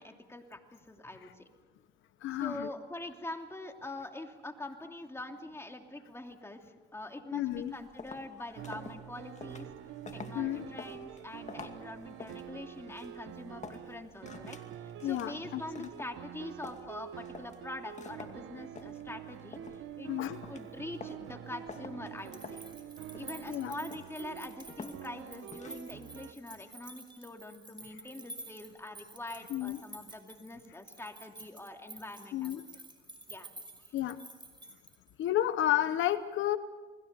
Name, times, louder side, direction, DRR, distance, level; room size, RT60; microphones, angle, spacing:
voice 1, 0.0-1.5 2.4-6.6 6.9-9.7 10.1-19.6 20.0-20.1 20.5-22.6 23.1-32.6 33.3-33.5 33.9-34.0, left 2 dB, 10° left, 3 dB, 2.9 m, -44 dB
voice 2, 2.2-2.7 7.3-7.7 10.3-10.7 15.0-15.9 20.1-20.4 23.5-23.7 29.5-29.8 32.3-32.6 33.9-34.2 35.2-36.6, left 13 dB, 75° left, 12 dB, 1.0 m, -31 dB
sound 1, 7.5-26.0, left 4 dB, 35° left, 2.4 m, -50 dB
sound 2, 8.6-26.3, right 10 dB, 85° right, 1.2 m, -46 dB
sound 3, 22.2-35.2, right 2 dB, 25° right, 5.3 m, -51 dB
29.5 x 21.0 x 6.9 m, 1.4 s
cardioid pair, 90°, 20 cm